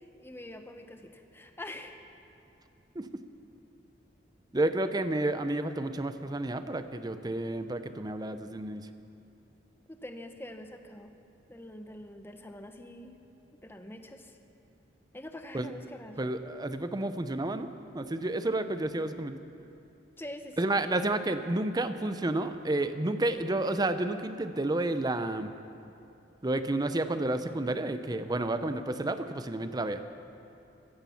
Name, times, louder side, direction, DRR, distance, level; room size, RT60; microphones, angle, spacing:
voice 1, 0.2-2.0 9.9-11.1 11.5-13.1 13.5-14.3 15.1-16.2 20.2-20.8, left 1 dB, 10° left, 6 dB, 0.9 m, -45 dB
voice 2, 4.5-8.9 15.5-15.7 16.2-17.7 17.9-19.4 20.6-25.5 26.4-30.0, right 2 dB, 20° right, 10 dB, 0.6 m, -30 dB
15.5 x 14.0 x 5.8 m, 2.8 s
head